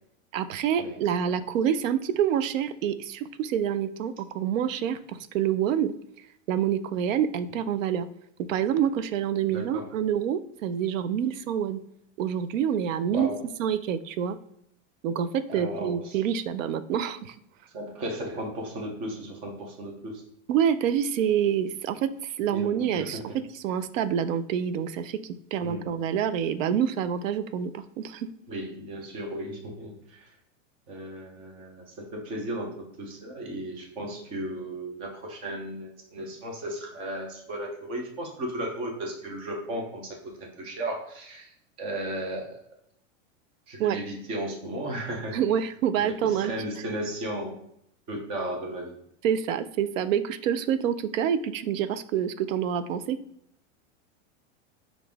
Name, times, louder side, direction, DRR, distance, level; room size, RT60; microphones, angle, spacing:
voice 1, 0.3-5.9 6.5-8.1 8.4-11.8 12.2-13.3 13.6-14.4 15.0-17.4 20.5-23.2 23.5-28.3 43.8-44.0 45.3-46.5 49.2-53.2, right 9 dB, 90° right, 13 dB, 0.5 m, -27 dB
voice 2, 9.5-9.9 13.1-13.4 15.5-16.2 17.7-20.2 22.5-23.2 25.6-25.9 28.5-30.3 30.9-41.5 41.8-42.6 43.7-45.4 46.0-47.6 48.1-48.9, right 1 dB, 15° right, 1 dB, 0.4 m, -35 dB
5.1 x 2.5 x 3.4 m, 0.74 s
supercardioid pair, 170°, 38 cm